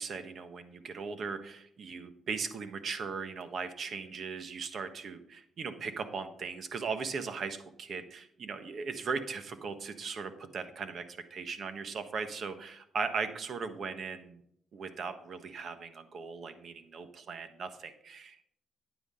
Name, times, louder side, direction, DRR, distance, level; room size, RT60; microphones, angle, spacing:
voice 1, 0.0-14.4 14.7-18.4, right 5 dB, 55° right, 9 dB, 1.3 m, -38 dB
9.7 x 9.5 x 3.8 m, 0.71 s
cardioid pair, 90°, 0 cm